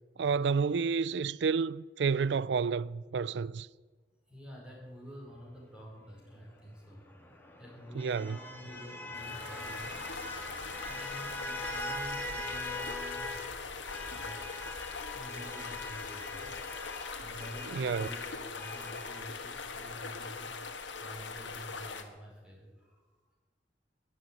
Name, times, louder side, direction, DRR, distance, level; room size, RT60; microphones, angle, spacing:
voice 1, 0.2-3.7 8.0-8.4 17.7-18.1, right 5 dB, 65° right, 0.4 m, -30 dB
voice 2, 4.3-7.0 7.6-10.0 10.8-13.4 14.1-16.6 17.2-20.6 21.0-23.1, equal, 5° right, 5.1 m, -49 dB
car horn, 6.9-13.5 13.9-19.2, left 1 dB, 10° left, 2.2 m, -42 dB
sound 1, 9.1-22.0, left 4 dB, 90° left, 1.7 m, -41 dB
14.5 x 10.5 x 9.0 m
head